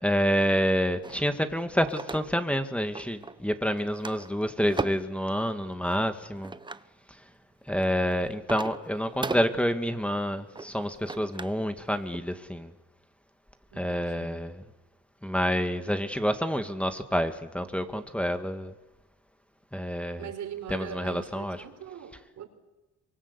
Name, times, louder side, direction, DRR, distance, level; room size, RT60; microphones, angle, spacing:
voice 1, 0.0-6.5 7.7-12.7 13.8-14.5 15.2-18.7 19.7-20.2 20.7-21.6, equal, 5° left, 2.0 m, -28 dB
sound 1, 1.0-2.6 2.9-3.5 3.8-5.2 5.9-6.9 7.5-11.6 11.9-12.2, right 3 dB, 15° right, 1.0 m, -38 dB
voice 2, 13.7-14.5 20.2-22.5, right 8 dB, 70° right, 4.9 m, -41 dB
27.0 x 24.5 x 8.3 m
cardioid pair, 90°, 30 cm